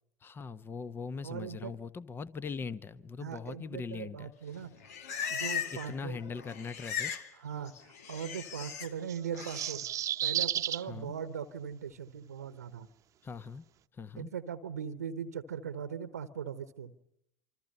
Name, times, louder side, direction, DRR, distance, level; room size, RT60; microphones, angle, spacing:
voice 1, 0.2-4.3 5.7-7.1 10.9-11.1 13.2-13.6 13.9-14.3, left 5 dB, 25° left, 16 dB, 1.1 m, -40 dB
voice 2, 1.2-1.7 3.2-4.7 5.3-6.2 7.4-9.9 10.2-12.9 14.2-16.9, right 7 dB, 80° right, 13 dB, 1.1 m, -40 dB
Livestock farm animals working animals, 4.5-6.0 6.2-7.3 7.6-8.9 9.3-9.7, left 7 dB, 70° left, 2.0 m, -38 dB
sound 1, 9.1-10.8, right 11 dB, 40° right, 1.0 m, -32 dB
27.0 x 26.0 x 5.5 m, 0.78 s
figure-of-eight pair, 75°, 8 cm